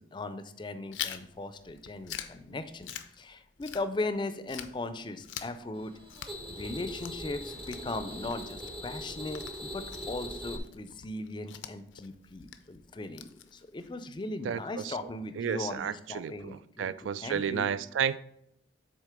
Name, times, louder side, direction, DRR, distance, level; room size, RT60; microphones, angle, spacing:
voice 1, 0.0-6.0 6.5-16.9 17.2-17.7, left 2 dB, 25° left, 0.4 m, -38 dB
Chewing mastication, 0.9-4.2 4.5-13.9, left 10 dB, 85° left, 0.5 m, -45 dB
sound 1, 5.7-10.6, equal, 30° right, 0.6 m, -41 dB
voice 2, 14.4-14.9 15.4-18.2, right 7 dB, 90° right, 0.3 m, -32 dB
6.5 x 4.0 x 4.9 m
head